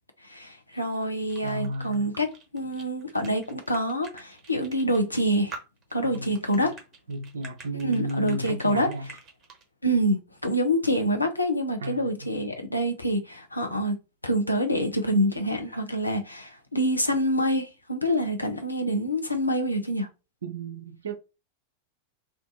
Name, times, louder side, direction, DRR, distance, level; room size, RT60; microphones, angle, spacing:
voice 1, 0.2-5.5 5.9-6.8 7.8-8.9 9.8-14.0 14.2-20.1, equal, 85° left, 0.6 m, -26 dB
sound 1, 0.7-9.6, right 4 dB, 30° right, 1.0 m, -46 dB
voice 2, 1.4-2.1 6.0-6.7 7.1-9.1 11.8-12.1 20.4-21.2, right 1 dB, 65° right, 0.5 m, -33 dB
2.5 x 2.5 x 3.7 m
figure-of-eight pair, 90°, 0 cm